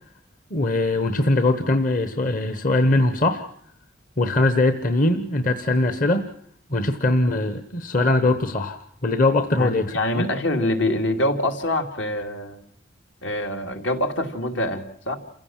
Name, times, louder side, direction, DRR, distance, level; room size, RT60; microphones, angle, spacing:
voice 1, 0.5-3.4 4.2-6.3 6.7-10.3, left 2 dB, 45° left, 10 dB, 1.1 m, -21 dB
voice 2, 9.6-12.6 13.2-15.2, left 1 dB, 75° left, 5 dB, 2.9 m, -25 dB
28.5 x 16.0 x 7.4 m, 0.64 s
head